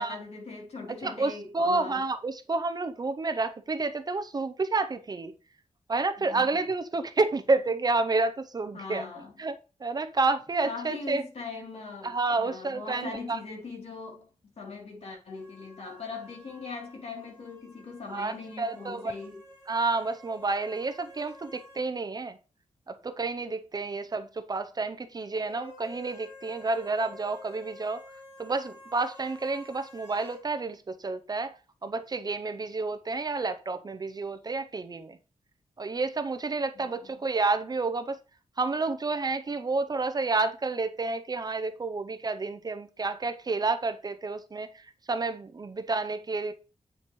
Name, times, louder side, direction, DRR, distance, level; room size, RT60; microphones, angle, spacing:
voice 1, 0.0-2.0 6.3-6.5 8.7-9.4 10.6-19.4 36.8-37.1, left 4 dB, 60° left, 3.1 m, -40 dB
voice 2, 1.0-5.3 5.9-9.1 9.4-9.6 9.8-11.2 12.0-13.4 18.1-19.1 19.7-22.4 22.9-28.0 28.4-35.2 35.8-38.2 38.6-46.5, right 3 dB, 35° right, 0.6 m, -30 dB
sound 1, 15.3-21.9 22.2-22.3 25.3-30.4, left 1 dB, 25° left, 4.1 m, -51 dB
8.5 x 7.0 x 3.1 m
wide cardioid pair, 160°, 12 cm